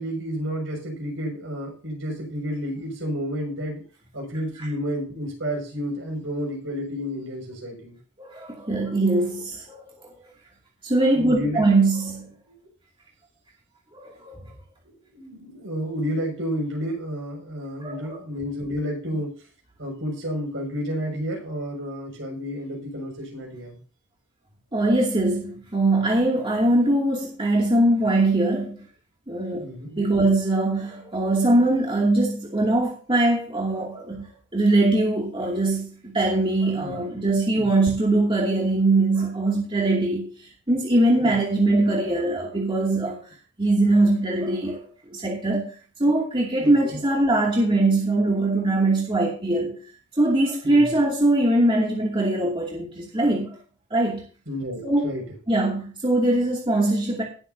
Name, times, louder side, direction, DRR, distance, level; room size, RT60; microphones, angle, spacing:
voice 1, 0.0-3.8 4.1-8.0 11.2-11.6 12.5-12.7 15.1-19.4 19.8-23.8 29.6-30.0 36.8-36.9 37.6-37.7 41.3-41.4 46.6-47.0 50.6-50.9 54.5-55.3, equal, 65° right, 5.9 m, -31 dB
voice 2, 8.2-10.1 10.8-12.3 13.9-14.5 17.8-18.2 24.7-28.8 29.3-29.7 30.0-34.3 34.5-43.2 43.6-49.8 50.1-53.6 53.9-54.2 54.8-55.1 55.5-57.2, right 2 dB, 25° right, 2.5 m, -22 dB
19.5 x 7.8 x 2.8 m
head